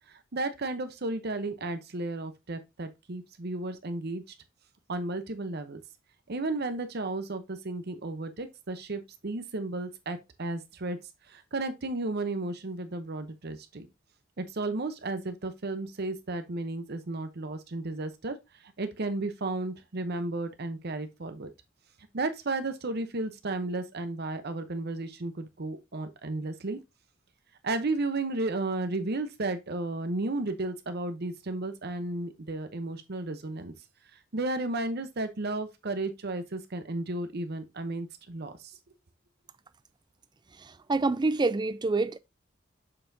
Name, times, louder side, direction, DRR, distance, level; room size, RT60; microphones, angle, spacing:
voice 1, 0.1-4.2 4.9-5.8 6.3-11.0 11.3-13.9 14.4-18.4 18.6-21.5 22.1-26.8 27.6-33.7 34.1-38.6, right 2 dB, 55° right, 0.8 m, -33 dB
voice 2, 40.6-42.2, right 3 dB, 20° right, 0.4 m, -27 dB
6.8 x 5.6 x 2.7 m
head